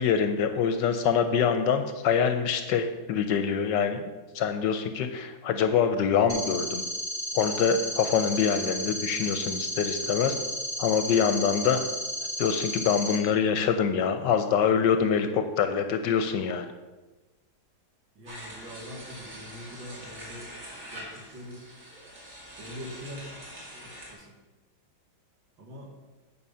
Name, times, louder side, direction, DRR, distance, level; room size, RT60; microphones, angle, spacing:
voice 1, 0.0-4.0 4.3-6.8 7.3-10.4 10.8-11.8 12.4-16.7, left 7 dB, 75° left, 8 dB, 1.2 m, -25 dB
sound 1, 6.3-13.2, equal, 10° right, 1.5 m, -33 dB
sound 2, 18.2-24.1, equal, 40° right, 2.5 m, -44 dB
voice 2, 18.2-20.5 20.9-21.7 22.6-23.4 23.8-24.4 25.6-25.9, equal, 70° right, -1 dB, 2.5 m, -43 dB
9.7 x 5.2 x 5.6 m, 1.2 s
omnidirectional pair, 2.2 m